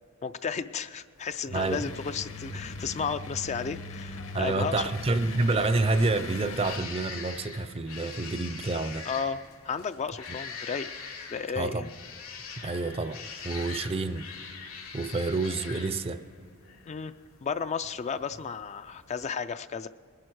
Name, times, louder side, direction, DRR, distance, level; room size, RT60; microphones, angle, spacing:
voice 1, 0.2-4.8 9.0-10.9 11.3-11.9 16.9-17.1 17.4-19.9, left 6 dB, 35° left, 11 dB, 0.3 m, -33 dB
sound 1, 1.2-19.3, left 5 dB, 85° left, 2.3 m, -45 dB
sound 2, 1.5-6.8, left 2 dB, 70° left, 1.3 m, -40 dB
voice 2, 1.5-1.9 4.3-9.0 11.6-11.9 12.6-14.3 14.6-16.2, right 3 dB, 30° right, 12 dB, 0.5 m, -28 dB
20.5 x 11.0 x 4.7 m, 2.2 s
head